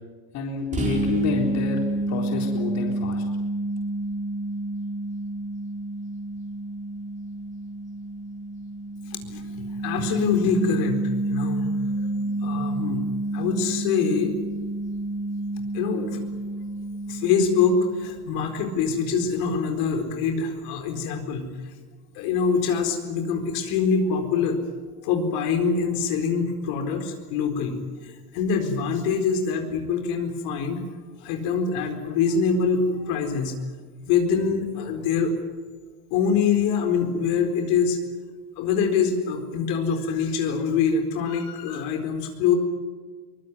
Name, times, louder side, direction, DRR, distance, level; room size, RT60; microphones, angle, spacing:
voice 1, 0.3-3.2, left 5 dB, 35° left, 1 dB, 3.9 m, -29 dB
sound 1, 0.7-18.2, right 2 dB, 15° right, 4.6 m, -29 dB
voice 2, 9.2-11.0 11.3-11.7 12.2-13.0 13.3-14.3 15.7-16.2 17.1-21.5 22.1-24.6 25.0-30.8 31.2-33.5 34.1-35.3 36.1-38.0 38.6-42.6, left 6 dB, 55° left, 5 dB, 4.3 m, -24 dB
23.5 x 21.0 x 9.6 m, 1.5 s
supercardioid pair, 140°, 43 cm